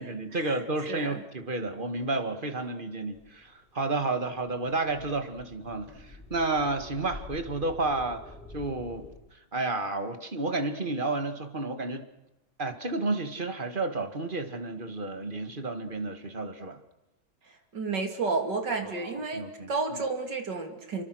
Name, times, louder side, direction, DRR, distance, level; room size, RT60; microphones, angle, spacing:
voice 1, 0.0-8.2 8.5-9.1 9.5-12.1 12.6-16.8 19.0-19.7, right 2 dB, 30° right, 8 dB, 2.1 m, -31 dB
sound 1, 3.1-9.2, left 2 dB, 5° left, 5.4 m, -48 dB
voice 2, 17.7-21.0, right 3 dB, 70° right, 5 dB, 3.5 m, -31 dB
30.0 x 24.0 x 6.4 m, 0.92 s
omnidirectional pair, 1.9 m